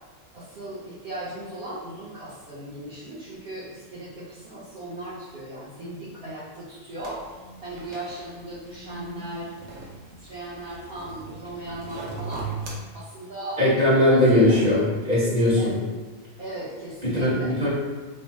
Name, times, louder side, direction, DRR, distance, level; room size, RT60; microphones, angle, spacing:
voice 1, 0.3-7.2 7.6-9.5 10.2-12.5 12.9-13.6 13.9-14.7 15.5-15.7 16.4-17.6, right 1 dB, 50° right, -9 dB, 0.9 m, -37 dB
sound 1, 7.0-12.8, right 4 dB, 70° right, 1.1 m, -39 dB
voice 2, 13.6-15.7 17.1-17.7, left 1 dB, 30° right, -10 dB, 1.4 m, -19 dB
3.4 x 2.2 x 3.9 m, 1.3 s
omnidirectional pair, 1.5 m